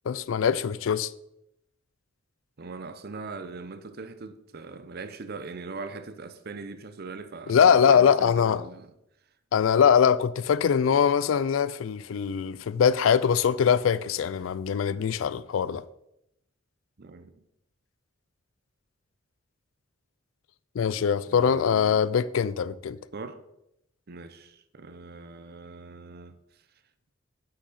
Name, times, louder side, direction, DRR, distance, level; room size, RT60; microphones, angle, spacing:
voice 1, 0.1-1.1 7.5-8.6 9.5-15.8 20.8-23.0, left 7 dB, 75° left, 0.4 m, -22 dB
voice 2, 2.6-8.9 17.0-17.4 21.3-22.1 23.1-23.4 24.1-26.7, right 3 dB, 50° right, 0.6 m, -41 dB
8.4 x 5.9 x 4.1 m
head